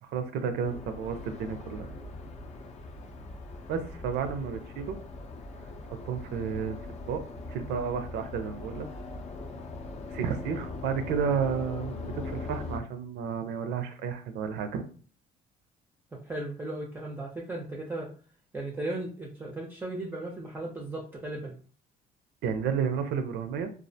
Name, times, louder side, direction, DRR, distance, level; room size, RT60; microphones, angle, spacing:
voice 1, 0.0-1.9 3.7-5.0 5.9-6.8 7.1-7.2 7.5-8.9 10.1-14.8 22.4-23.7, right 6 dB, 80° right, 8 dB, 0.4 m, -31 dB
sound 1, 0.6-12.8, left 3 dB, 40° left, 0.5 m, -41 dB
voice 2, 16.1-18.1 18.5-21.5, right 2 dB, 10° right, -2 dB, 0.5 m, -36 dB
2.3 x 2.1 x 2.6 m, 0.41 s
cardioid pair, 110°, 17 cm